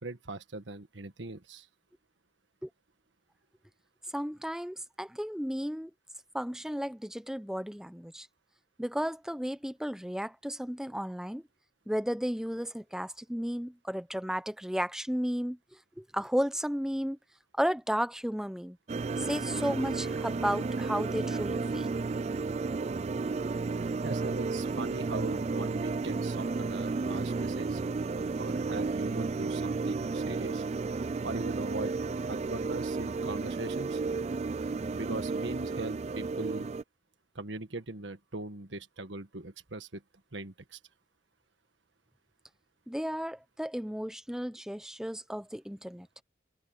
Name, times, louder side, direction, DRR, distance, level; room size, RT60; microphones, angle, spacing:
voice 1, 0.0-1.7 24.0-27.8 28.4-30.6 31.2-32.0 32.3-34.0 34.6-36.7 37.3-40.0 40.3-40.8, right 2 dB, 85° right, 1.5 m, -40 dB
voice 2, 4.1-5.9 6.3-8.3 8.8-11.4 11.9-15.6 16.0-17.2 17.6-18.8 19.2-21.9 42.9-46.1, equal, 5° right, 0.9 m, -33 dB
sound 1, 18.9-36.8, right 4 dB, 35° right, 0.3 m, -32 dB
head